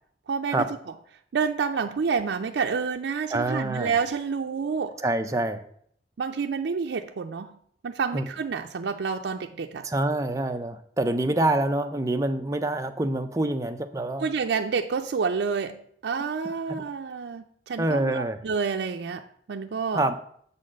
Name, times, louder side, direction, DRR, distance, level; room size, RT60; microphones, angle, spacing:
voice 1, 0.3-0.7 1.3-5.0 6.2-7.5 7.8-9.8 14.2-19.2 19.5-20.1, right 5 dB, 75° right, 4 dB, 0.4 m, -28 dB
voice 2, 3.3-3.9 5.0-5.6 8.1-8.3 9.8-14.3 17.8-18.4 19.9-20.2, right 2 dB, 20° right, 7 dB, 0.5 m, -26 dB
7.5 x 4.2 x 6.2 m, 0.64 s
head